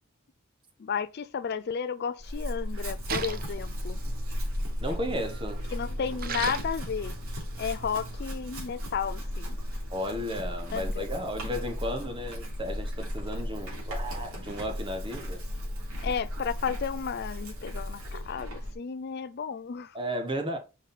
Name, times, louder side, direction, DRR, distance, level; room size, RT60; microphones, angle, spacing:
voice 1, 0.8-4.0 5.7-7.1 7.6-9.6 10.7-11.0 16.0-19.9, left 6 dB, 50° left, 0.4 m, -33 dB
Chewing mastication / Livestock farm animals working animals, 2.2-18.8, equal, 75° right, 3.2 m, -35 dB
Splash splatter, 3.1-8.2, right 5 dB, 45° right, 0.7 m, -40 dB
voice 2, 4.8-5.6 9.9-15.4 19.9-20.6, equal, 25° right, 1.3 m, -34 dB
5.3 x 5.0 x 4.1 m
head